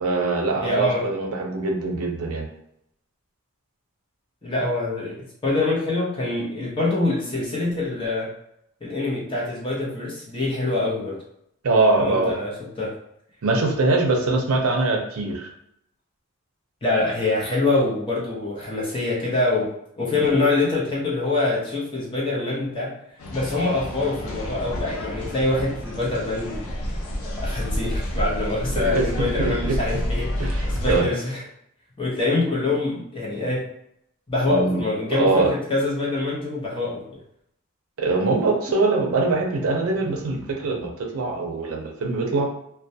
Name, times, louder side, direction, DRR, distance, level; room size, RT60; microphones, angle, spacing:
voice 1, 0.0-2.5 11.6-12.3 13.4-15.5 20.2-20.3 28.7-29.1 29.4-29.8 30.4-31.1 34.5-34.8 35.1-35.5 38.0-42.5, right 3 dB, 75° right, 1 dB, 0.5 m, -23 dB
voice 2, 0.6-1.0 4.4-5.2 5.4-8.3 8.8-11.2 12.0-12.9 16.8-19.7 20.0-23.0 23.3-31.4 32.0-33.7 34.3-37.2, left 2 dB, 25° left, -5 dB, 0.6 m, -25 dB
sound 1, 23.2-31.0, equal, 90° left, 0.5 m, -29 dB
2.1 x 2.1 x 2.7 m, 0.75 s
head